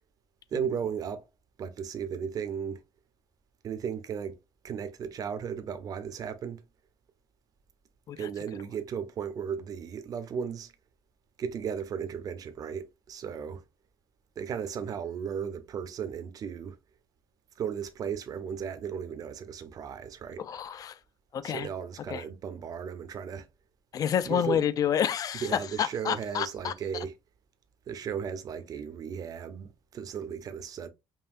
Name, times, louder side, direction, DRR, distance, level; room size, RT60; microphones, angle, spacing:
voice 1, 0.5-1.3 1.6-2.8 3.6-4.4 4.6-6.6 8.2-10.7 11.4-13.6 14.4-16.8 17.6-20.4 21.4-23.5 24.2-24.6 25.4-27.1 27.9-30.9, right 7 dB, 45° right, 0.6 m, -35 dB
voice 2, 20.4-21.0 21.3-21.7 22.1-22.2 23.9-25.5 25.8-26.7, left 9 dB, 45° left, 0.4 m, -29 dB
5.4 x 2.7 x 2.5 m
cardioid pair, 155°, 9 cm